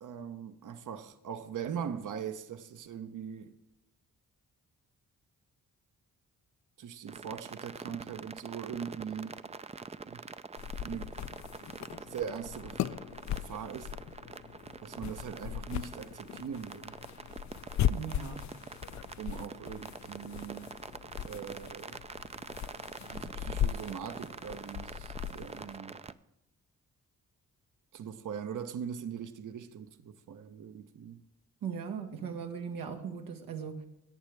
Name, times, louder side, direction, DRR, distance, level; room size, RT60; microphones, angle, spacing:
voice 1, 0.0-3.5 6.8-9.4 10.0-10.3 10.8-11.1 12.1-12.8 13.4-13.9 14.8-17.0 19.2-20.7 21.2-22.0 23.1-26.0 27.9-31.2, right 8 dB, 65° right, 0.9 m, -41 dB
sound 1, 7.1-26.1, right 4 dB, 20° right, 0.4 m, -45 dB
sound 2, 10.6-25.8, left 10 dB, 55° left, 0.4 m, -38 dB
voice 2, 17.9-18.5 31.6-33.9, right 6 dB, 90° right, 1.4 m, -38 dB
18.0 x 8.3 x 3.4 m
cardioid pair, 90°, 34 cm